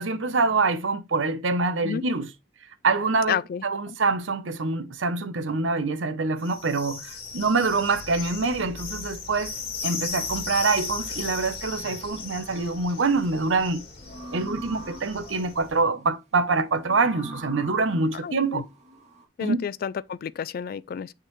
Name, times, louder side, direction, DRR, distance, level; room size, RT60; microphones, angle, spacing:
voice 1, 0.0-2.3 2.8-3.4 3.6-9.5 9.8-13.8 14.3-18.6 19.4-19.6, right 3 dB, 85° right, 0.8 m, -25 dB
voice 2, 3.3-3.9 18.2-18.6 19.4-21.1, left 7 dB, 50° left, 0.3 m, -31 dB
sound 1, 6.4-15.8, left 5 dB, 35° left, 2.5 m, -36 dB
sound 2, 12.1-12.9 14.0-15.5 16.8-19.3, right 1 dB, 40° right, 1.5 m, -42 dB
9.0 x 3.7 x 3.1 m
head